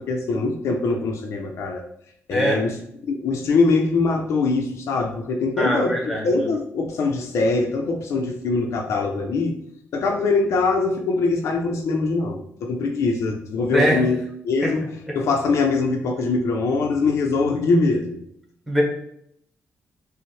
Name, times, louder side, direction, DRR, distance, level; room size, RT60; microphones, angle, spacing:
voice 1, 0.0-1.8 2.3-2.7 3.1-9.5 9.9-14.2 14.4-14.8 15.2-18.2, left 3 dB, 75° left, 3 dB, 0.5 m, -22 dB
voice 2, 5.6-6.5 13.7-14.0 14.6-14.7 18.7-18.8, equal, ahead, -3 dB, 1.2 m, -22 dB
5.4 x 2.1 x 3.2 m, 0.72 s
cardioid pair, 120°, 5 cm